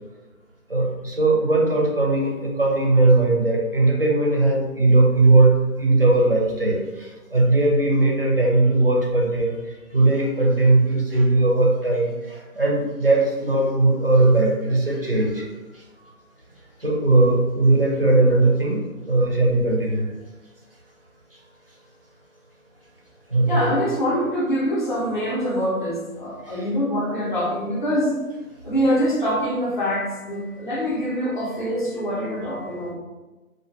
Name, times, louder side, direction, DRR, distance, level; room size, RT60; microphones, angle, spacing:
voice 1, 0.7-9.5 9.9-15.4 15.7-15.8 16.8-20.1 23.3-23.7 26.5-26.6, right 2 dB, 40° right, -2 dB, 0.4 m, -19 dB
voice 2, 23.4-28.2 28.6-32.9, equal, 35° left, -6 dB, 0.6 m, -24 dB
2.2 x 2.2 x 2.6 m, 1.1 s
figure-of-eight pair, 155°, 45 cm